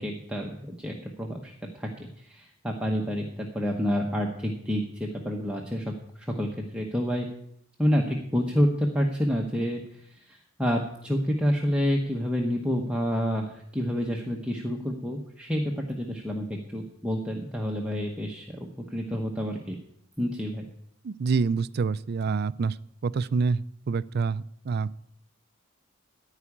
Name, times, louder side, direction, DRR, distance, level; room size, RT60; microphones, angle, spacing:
voice 1, 0.0-7.3 7.8-19.8 20.2-20.6, equal, 5° right, -1 dB, 0.9 m, -29 dB
voice 2, 21.0-22.8 23.0-25.0, right 5 dB, 50° right, 17 dB, 0.4 m, -27 dB
14.5 x 4.9 x 8.5 m, 0.72 s
head